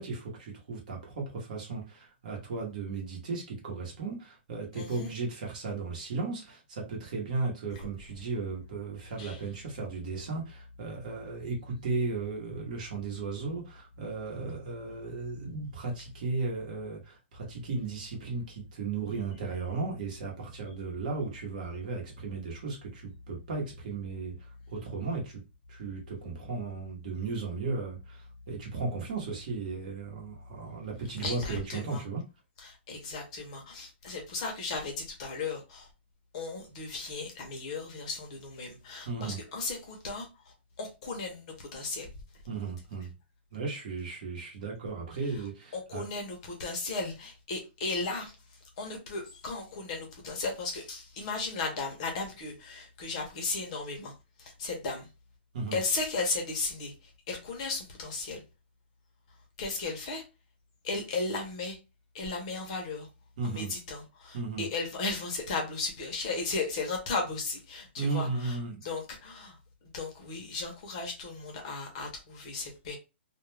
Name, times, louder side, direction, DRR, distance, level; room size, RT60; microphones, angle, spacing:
voice 1, 0.0-25.4 25.7-32.2 39.1-39.4 42.5-43.1 43.5-46.1 55.5-55.8 63.4-63.7 64.3-64.7 68.0-68.8, right 4 dB, 40° right, 1.0 m, -35 dB
voice 2, 4.7-5.1 9.2-9.4 31.2-32.0 32.6-35.9 36.3-42.1 45.3-45.4 45.7-54.1 54.4-55.1 55.7-58.4 59.6-60.2 60.8-61.8 62.1-63.1 63.4-73.0, left 3 dB, 30° left, 0.7 m, -36 dB
2.3 x 2.2 x 3.1 m
hypercardioid pair, 170°, 6 cm